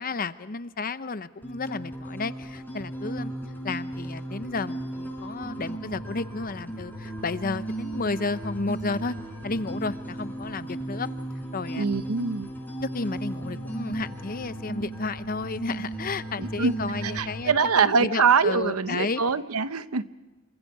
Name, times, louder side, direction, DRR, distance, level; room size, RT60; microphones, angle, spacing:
voice 1, 0.0-3.3 3.6-9.1 9.4-11.1 11.5-11.9 12.9-19.2, left 3 dB, 40° left, 13 dB, 0.8 m, -32 dB
sound 1, 1.4-17.4, right 1 dB, 10° left, 4.4 m, -35 dB
voice 2, 11.8-12.5 16.4-16.7 17.0-20.0, right 5 dB, 80° right, 13 dB, 0.8 m, -24 dB
27.0 x 25.5 x 4.8 m, 1.2 s
head